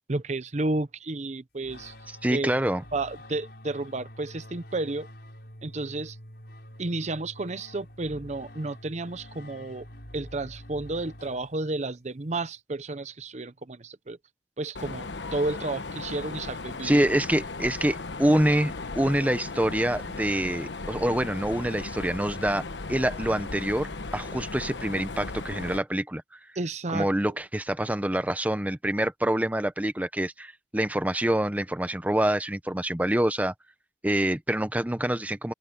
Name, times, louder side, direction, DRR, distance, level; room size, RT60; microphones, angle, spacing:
voice 1, 0.1-1.9 2.3-2.5 2.9-5.1 5.6-6.2 6.8-9.8 10.1-14.2 14.6-17.0 26.6-27.3, right 2 dB, 40° right, 0.7 m, -32 dB
sound 1, 1.6-11.9, left 1 dB, 60° left, 5.9 m, -47 dB
voice 2, 2.1-2.8 16.8-26.2 26.9-33.5 34.0-35.5, right 1 dB, 10° right, 0.8 m, -26 dB
Mechanisms, 14.7-25.8, left 3 dB, 80° left, 1.1 m, -36 dB
open air
head